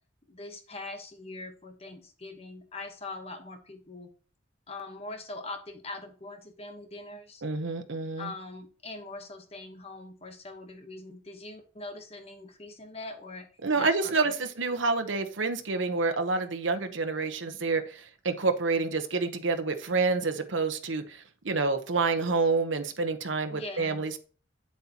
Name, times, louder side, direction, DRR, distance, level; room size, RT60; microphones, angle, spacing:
voice 1, 0.3-4.1 4.7-7.4 8.2-13.5 13.7-14.3 23.5-24.1, left 2 dB, 30° left, 6 dB, 1.2 m, -42 dB
voice 2, 7.4-8.3 13.6-24.2, right 4 dB, 85° right, 8 dB, 1.1 m, -28 dB
8.5 x 7.8 x 2.9 m, 0.38 s
head